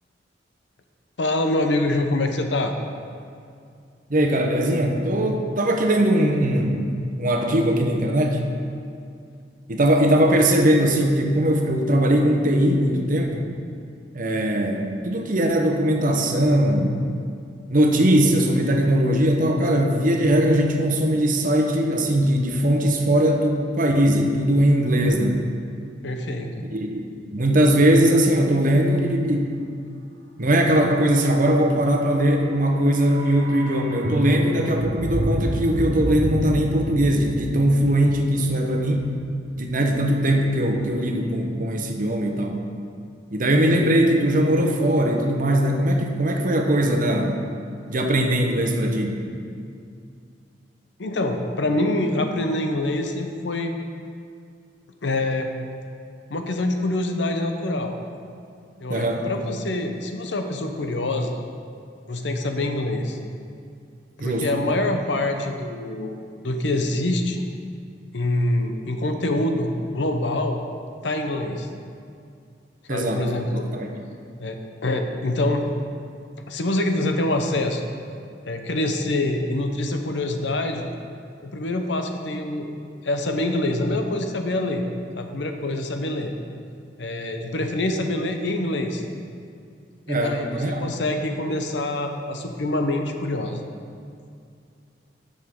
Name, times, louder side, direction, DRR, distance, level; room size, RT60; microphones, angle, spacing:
voice 1, 1.2-2.7 26.0-26.5 51.0-53.7 55.0-55.5 56.3-58.0 58.8-61.4 62.1-63.2 64.2-66.2 66.4-67.4 68.1-70.6 71.0-71.7 72.9-73.7 74.4-75.6 76.5-77.8 78.5-80.9 81.4-82.7 83.0-84.8 85.2-86.3 87.0-89.0 90.1-90.5 90.8-93.6, left 1 dB, 75° left, 5 dB, 0.8 m, -25 dB
voice 2, 4.1-6.9 7.2-8.4 9.7-13.5 14.1-16.9 17.7-25.4 26.7-27.0 27.3-29.5 30.4-39.1 39.6-42.6 43.3-47.4 47.9-49.2 58.9-59.3 64.2-64.5 72.9-73.9 90.1-90.8, right 1 dB, 50° right, 2 dB, 0.9 m, -20 dB
sound 1, 32.3-40.5 40.7-40.8, right 1 dB, 75° right, 0.9 m, -30 dB
11.5 x 6.5 x 3.7 m, 2.4 s
head